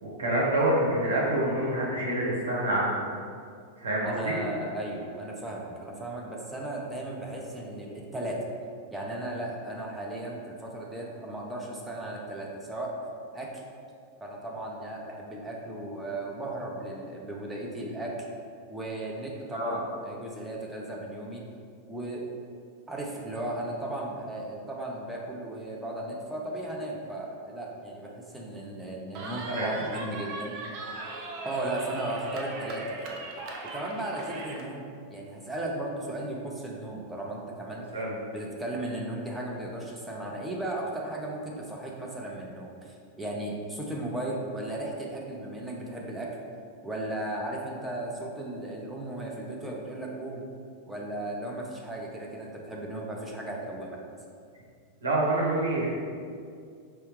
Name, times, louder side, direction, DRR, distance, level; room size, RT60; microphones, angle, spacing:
voice 1, 0.0-3.0 3.8-4.4 19.5-19.8 29.4-29.7 37.9-38.2 55.0-55.9, right 1 dB, 70° right, -4 dB, 1.0 m, -27 dB
voice 2, 4.0-8.4 8.9-12.9 13.3-13.6 14.2-18.1 18.7-21.4 21.9-22.3 22.9-30.6 31.4-33.2 33.6-34.8 35.1-37.8 38.3-46.3 46.8-50.4 50.9-54.0, right 1 dB, 5° right, -2 dB, 0.7 m, -36 dB
Cheering, 29.2-34.7, right 3 dB, 40° right, 0.5 m, -39 dB
4.4 x 3.3 x 3.1 m, 2.3 s
figure-of-eight pair, 90°, 0 cm